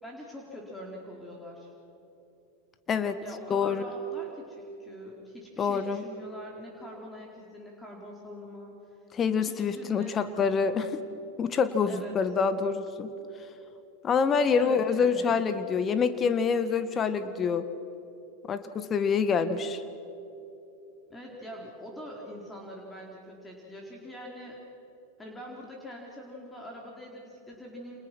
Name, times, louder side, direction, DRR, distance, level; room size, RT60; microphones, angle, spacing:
voice 1, 0.0-1.7 3.2-8.8 9.4-10.9 11.9-12.2 14.6-15.4 21.1-24.6 25.2-28.0, equal, 10° left, -1 dB, 4.3 m, -44 dB
voice 2, 2.9-3.2 3.5-3.8 5.6-6.0 9.1-10.9 11.4-13.1 14.0-17.7 18.5-19.8, left 6 dB, 30° left, 11 dB, 1.4 m, -26 dB
29.5 x 27.5 x 6.2 m, 3.0 s
figure-of-eight pair, 90°, 0 cm